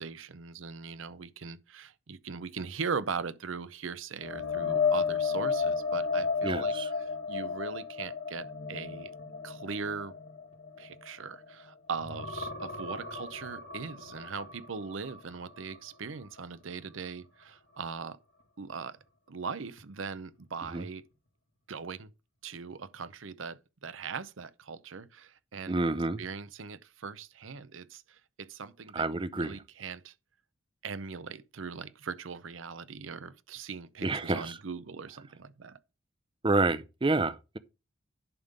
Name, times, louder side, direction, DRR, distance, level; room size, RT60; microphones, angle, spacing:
voice 1, 0.0-6.7 7.0-9.1 9.4-10.1 10.8-18.2 18.6-19.0 19.3-21.0 21.7-22.1 22.4-25.8 26.2-30.1 30.8-35.8, right 5 dB, 80° right, 0.7 m, -40 dB
sound 1, 4.2-11.6 12.0-15.8 16.2-16.4 19.8-19.9, left 5 dB, 85° left, 2.4 m, -33 dB
voice 2, 6.4-6.9 20.7-20.8 25.7-26.2 28.9-29.6 34.0-34.6 36.4-37.6, right 3 dB, 25° right, 0.6 m, -29 dB
11.0 x 3.7 x 6.6 m
head